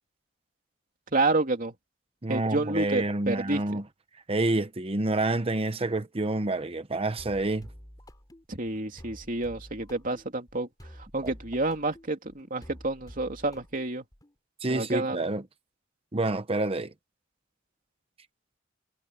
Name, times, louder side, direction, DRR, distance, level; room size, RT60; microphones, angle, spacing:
voice 1, 1.1-1.7 2.3-3.8 8.5-10.7 11.1-14.0 14.7-15.2, right 2 dB, 45° right, 2.8 m, -29 dB
voice 2, 2.2-3.8 4.3-7.7 11.2-11.3 14.6-15.4 16.1-16.9, right 2 dB, 30° right, 0.9 m, -28 dB
sound 1, 7.2-14.3, equal, 20° left, 3.6 m, -49 dB
head